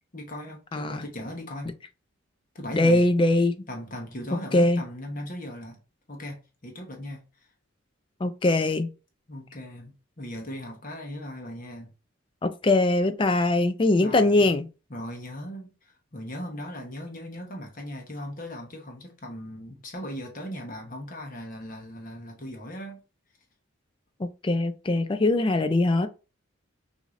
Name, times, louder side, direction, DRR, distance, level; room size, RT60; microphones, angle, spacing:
voice 1, 0.1-1.7 2.5-3.1 3.7-5.8 6.1-7.5 9.3-11.9 13.9-14.5 14.9-23.0, left 1 dB, 40° left, 1.0 m, -38 dB
voice 2, 0.7-1.0 2.7-3.5 4.5-4.8 8.2-8.9 12.4-14.7 24.2-26.1, left 2 dB, 25° left, 0.3 m, -22 dB
6.1 x 2.7 x 2.5 m
head